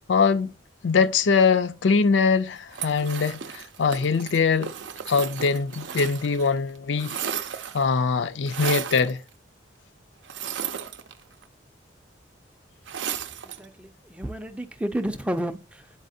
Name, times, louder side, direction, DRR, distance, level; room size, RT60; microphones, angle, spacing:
voice 1, 0.1-0.5 0.8-4.7 5.1-7.2 7.7-9.2, left 5 dB, 80° left, 0.5 m, -22 dB
sound 1, 2.7-6.5 6.8-7.9 8.5-9.1 10.2-11.4 12.9-13.7, right 8 dB, 75° right, 0.5 m, -34 dB
voice 2, 13.4-15.9, right 1 dB, 5° right, 0.4 m, -31 dB
9.7 x 4.1 x 2.7 m
head